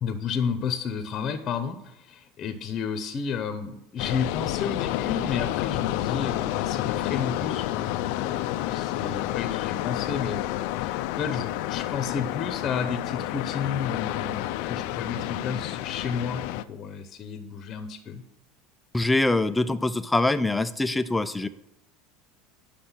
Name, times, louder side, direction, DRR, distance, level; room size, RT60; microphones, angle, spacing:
voice 1, 0.0-10.4 10.8-16.4 16.7-18.2, left 6 dB, 35° left, 8 dB, 1.0 m, -32 dB
sound 1, 4.0-16.6, left 14 dB, 70° left, 0.5 m, -30 dB
voice 2, 18.9-21.5, left 2 dB, 10° left, 12 dB, 0.5 m, -24 dB
10.0 x 6.6 x 5.7 m, 0.83 s
supercardioid pair, 125°, 0 cm